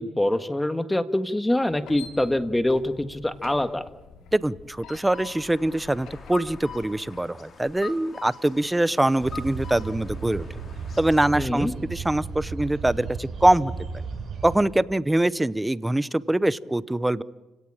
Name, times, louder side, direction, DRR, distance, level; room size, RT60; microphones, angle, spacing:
voice 1, 0.0-3.8 11.3-11.7, left 1 dB, 10° left, 11 dB, 1.6 m, -25 dB
sound 1, 1.7-7.2, left 6 dB, 85° left, 4.3 m, -47 dB
voice 2, 4.3-10.4 11.0-13.7 14.4-17.2, right 1 dB, 10° right, 18 dB, 0.8 m, -23 dB
sound 2, 5.1-11.2, left 5 dB, 45° left, 4.3 m, -43 dB
sound 3, 9.2-14.6, right 4 dB, 50° right, 7.5 m, -35 dB
30.0 x 17.5 x 8.9 m, 1.1 s
cardioid pair, 90°, 0 cm